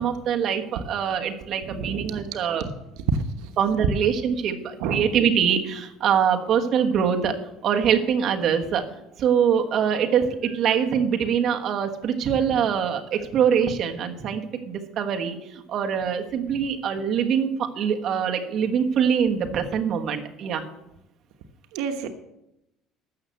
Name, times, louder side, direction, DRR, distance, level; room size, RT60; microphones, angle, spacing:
voice 1, 0.0-2.6 3.6-7.3 7.6-8.8 9.2-20.6, right 7 dB, 50° right, 4 dB, 1.4 m, -24 dB
voice 2, 1.6-2.2 3.1-3.5 4.8-5.0 12.2-12.4 16.5-16.6 21.7-22.1, right 3 dB, 85° right, 7 dB, 1.1 m, -30 dB
13.0 x 6.6 x 7.9 m, 0.88 s
cardioid pair, 140°, 0 cm